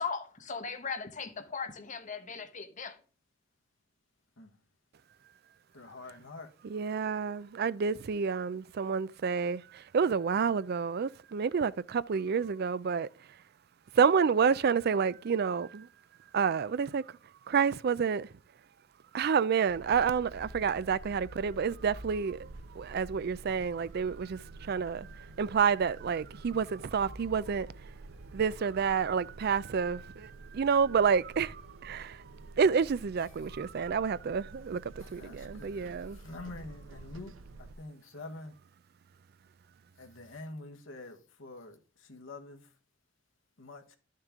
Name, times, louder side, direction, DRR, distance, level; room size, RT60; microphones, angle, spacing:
voice 1, 0.0-3.0, left 5 dB, 40° left, 1.1 m, -38 dB
voice 2, 5.7-6.5 35.2-37.3 37.6-38.6 40.0-42.6 43.6-44.0, left 2 dB, 90° left, 1.4 m, -46 dB
voice 3, 6.6-13.1 13.9-15.9 16.3-17.2 17.5-18.3 19.1-27.7 28.3-32.2 32.6-36.2, right 6 dB, 55° right, 0.4 m, -29 dB
sound 1, 19.7-37.7, right 2 dB, 90° right, 0.9 m, -49 dB
11.5 x 6.5 x 3.6 m
head